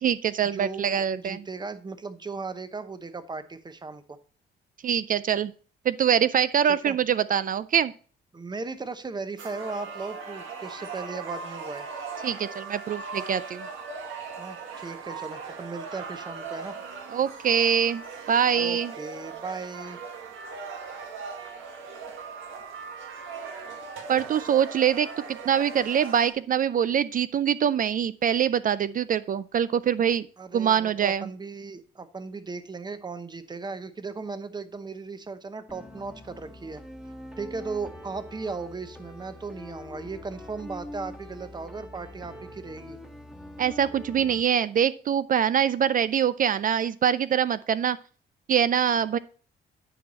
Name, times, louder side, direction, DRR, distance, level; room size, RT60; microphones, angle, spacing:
voice 1, 0.0-1.4 4.8-5.5 5.9-7.9 12.2-13.7 17.1-18.9 24.1-30.3 30.5-31.3 43.6-48.0 48.5-49.2, right 8 dB, 45° right, 16 dB, 0.4 m, -24 dB
voice 2, 0.5-4.2 6.6-7.0 8.3-11.9 14.4-16.7 18.5-20.0 30.4-36.8 37.4-43.0, right 4 dB, 20° right, 11 dB, 0.8 m, -37 dB
sound 1, 9.4-26.3, right 5 dB, 85° right, 1.6 m, -39 dB
sound 2, 35.7-44.4, left 1 dB, 5° right, 1.4 m, -44 dB
10.0 x 4.7 x 4.2 m, 0.41 s
cardioid pair, 90°, 20 cm